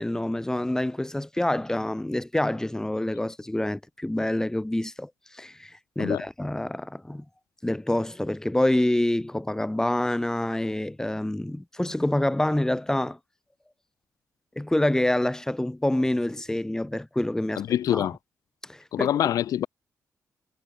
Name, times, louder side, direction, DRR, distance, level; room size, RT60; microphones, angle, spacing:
voice 1, 0.0-7.3 7.6-13.2 14.6-17.6 17.9-18.1 18.6-19.1, left 1 dB, 10° left, 3.9 m, -27 dB
voice 2, 17.6-18.2 18.9-19.7, left 11 dB, 85° left, 1.5 m, -25 dB
cardioid pair, 85°, 6 cm